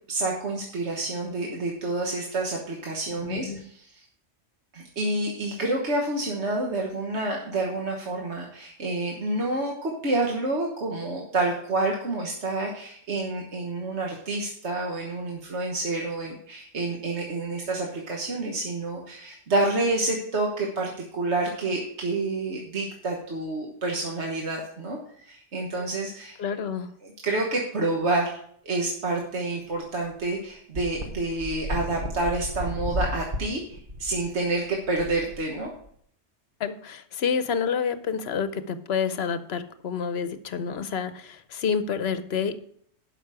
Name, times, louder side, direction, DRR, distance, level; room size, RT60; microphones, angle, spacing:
voice 1, 0.1-4.0 4.7-26.4 27.0-35.7, right 2 dB, 65° right, -1 dB, 1.6 m, -28 dB
voice 2, 3.2-3.6 25.7-25.9 26.4-26.9 36.6-42.6, left 6 dB, 65° left, 12 dB, 0.9 m, -29 dB
sound 1, 29.7-29.8 30.1-30.2 30.7-35.9, left 1 dB, 50° right, 1.5 m, -34 dB
12.0 x 5.8 x 4.9 m, 0.65 s
omnidirectional pair, 1.2 m